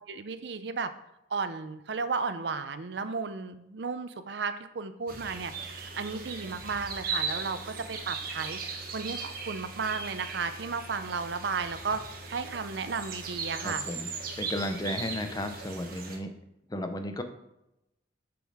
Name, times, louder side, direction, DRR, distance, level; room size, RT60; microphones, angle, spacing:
voice 1, 0.1-0.9 1.3-12.0 12.3-13.9, right 5 dB, 70° right, 11 dB, 0.6 m, -34 dB
sound 1, 5.1-16.2, right 4 dB, 55° right, 1.2 m, -38 dB
voice 2, 13.6-14.1 14.4-16.3 16.7-17.2, left 1 dB, 20° left, 7 dB, 0.7 m, -34 dB
6.8 x 6.2 x 4.8 m, 0.88 s
head